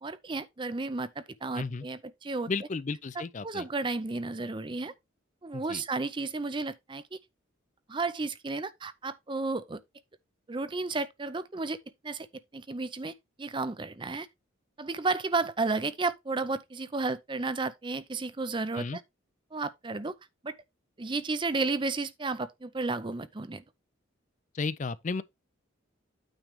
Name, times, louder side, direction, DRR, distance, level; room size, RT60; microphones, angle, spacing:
voice 1, 0.0-2.5 3.4-4.9 5.4-7.2 7.9-9.8 10.5-11.8 12.0-12.3 12.5-13.1 13.4-14.3 14.8-19.0 19.5-20.1 20.4-20.6 21.0-23.6, right 3 dB, 25° right, 0.5 m, -32 dB
voice 2, 1.5-1.9 2.5-3.7 5.5-5.8 18.7-19.0 24.5-25.2, left 4 dB, 35° left, 0.4 m, -33 dB
9.0 x 3.3 x 5.0 m
head